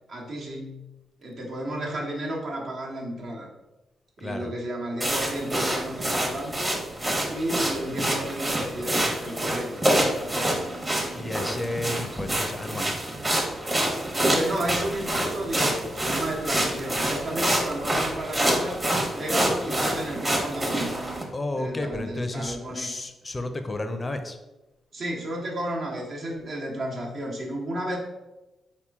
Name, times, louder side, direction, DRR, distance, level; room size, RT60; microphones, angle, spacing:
voice 1, 0.1-0.9 1.2-3.5 4.2-6.8 7.3-10.7 14.2-18.8 19.1-21.0 21.5-22.9 24.9-28.0, right 1 dB, 60° right, -2 dB, 1.2 m, -32 dB
voice 2, 4.2-4.5 11.2-12.9 21.3-24.4, left 2 dB, 25° left, 7 dB, 0.5 m, -32 dB
sound 1, 5.0-21.2, right 1 dB, 25° right, 1.0 m, -27 dB
4.3 x 2.9 x 3.5 m, 1.0 s
cardioid pair, 90°, 0 cm